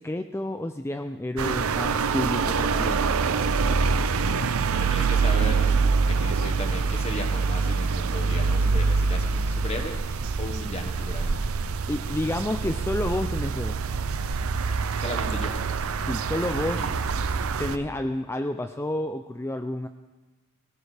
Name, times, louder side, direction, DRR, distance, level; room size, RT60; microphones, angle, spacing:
voice 1, 0.0-3.1 11.9-13.8 16.0-16.9 17.6-19.9, left 1 dB, 10° left, 7 dB, 0.4 m, -30 dB
sound 1, 1.4-17.8, right 4 dB, 80° right, 0.6 m, -25 dB
voice 2, 4.7-9.9 10.4-11.4 15.0-15.5 16.7-16.9, left 2 dB, 30° left, 5 dB, 1.4 m, -36 dB
18.5 x 17.5 x 3.4 m, 1.2 s
head